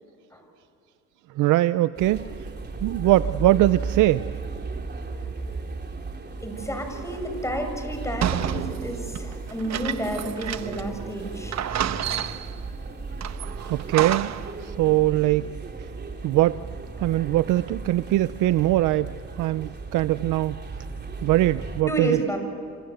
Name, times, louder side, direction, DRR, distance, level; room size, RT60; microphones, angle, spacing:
voice 1, 1.4-2.3 2.8-4.3 13.7-14.3 14.6-15.5 16.2-16.6 17.0-19.1 19.4-20.6 21.2-22.2, right 15 dB, 90° right, 14 dB, 0.6 m, -21 dB
sound 1, 2.0-21.8, right 4 dB, 35° right, 3.5 m, -35 dB
voice 2, 6.4-11.6 21.8-22.4, right 1 dB, 10° left, 5 dB, 7.4 m, -30 dB
sound 2, 8.2-10.9 11.2-11.3 11.5-12.6 13.2-14.5, right 10 dB, 60° right, 1.1 m, -30 dB
27.5 x 27.0 x 8.0 m, 2.5 s
cardioid pair, 90°, 30 cm